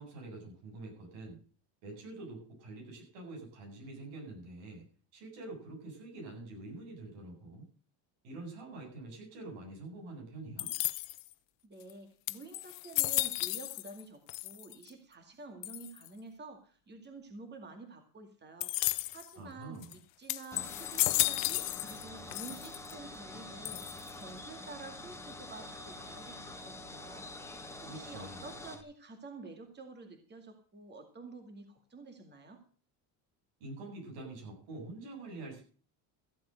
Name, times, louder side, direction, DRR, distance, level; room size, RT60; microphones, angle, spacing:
voice 1, 0.0-1.4 1.8-4.9 5.1-7.6 8.2-10.7 19.4-19.9 27.8-28.4 33.6-35.6, right 2 dB, 90° right, 0 dB, 7.9 m, -46 dB
sound 1, 10.6-11.3 11.9-12.0 12.3-14.0 14.3-14.9 15.6-16.1 18.6-19.3 19.8-19.9 20.3-22.0 22.3-22.9 23.6-24.2, left 22 dB, 75° left, 0.8 m, -33 dB
voice 2, 11.6-23.8 24.2-32.6, right 3 dB, 25° right, 5 dB, 2.3 m, -50 dB
sound 2, 20.5-28.8, left 2 dB, 5° left, 1.6 m, -46 dB
15.0 x 7.9 x 6.5 m, 0.40 s
cardioid pair, 130°, 43 cm